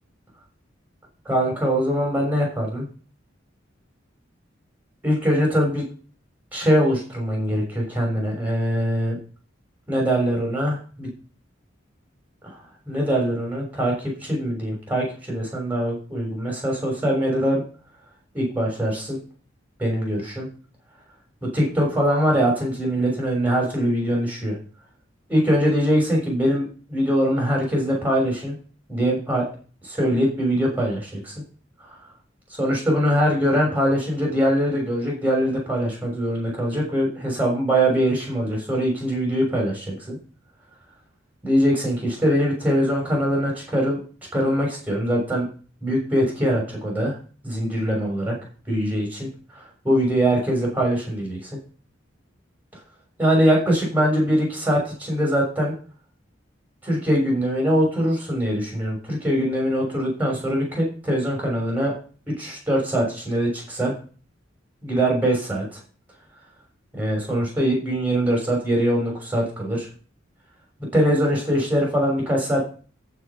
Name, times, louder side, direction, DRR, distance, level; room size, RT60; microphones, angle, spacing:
voice 1, 1.2-2.9 5.0-5.8 6.5-9.2 9.9-11.1 12.9-13.9 14.2-17.6 18.3-19.2 19.8-20.5 21.4-24.6 25.3-28.6 28.9-29.4 29.8-31.3 32.6-40.2 41.4-44.0 44.3-45.5 45.8-47.1 47.4-48.3 48.7-49.3 49.8-51.4 53.2-55.7 56.8-61.9 62.4-63.9 64.8-65.8 66.9-69.9 70.9-72.6, equal, 10° right, -1 dB, 6.4 m, -22 dB
14.5 x 5.5 x 6.0 m, 0.39 s
head